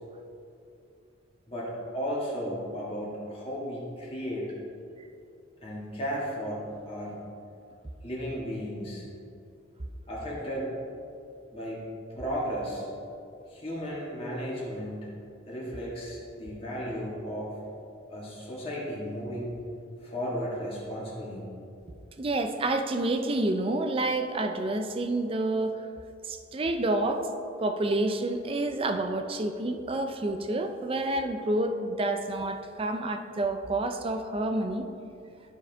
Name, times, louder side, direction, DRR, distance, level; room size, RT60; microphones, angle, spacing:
voice 1, 1.5-4.5 5.6-7.1 8.0-9.0 10.1-10.7 11.5-11.8 12.1-12.9 13.5-15.1 15.5-17.6 18.1-19.5 20.0-21.5, equal, 30° left, -6 dB, 1.7 m, -34 dB
voice 2, 22.2-25.8 26.2-27.3 27.6-34.9, right 2 dB, 30° right, 7 dB, 0.5 m, -28 dB
12.5 x 4.6 x 3.4 m, 2.6 s
head